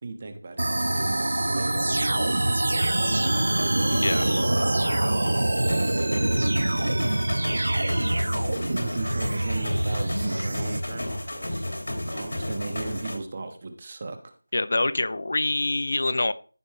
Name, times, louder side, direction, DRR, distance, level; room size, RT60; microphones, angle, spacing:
voice 1, 0.0-4.0 8.3-11.7 12.1-14.3, right 3 dB, 25° right, 7 dB, 1.2 m, -37 dB
sound 1, 0.6-10.8, right 1 dB, 60° right, 0.9 m, -25 dB
sound 2, 2.8-13.2, left 1 dB, 65° left, 3.1 m, -33 dB
voice 2, 4.0-4.3 14.5-16.3, left 2 dB, 45° left, 14 dB, 0.6 m, -25 dB
14.5 x 5.4 x 3.2 m, 0.40 s
figure-of-eight pair, 175°, 0 cm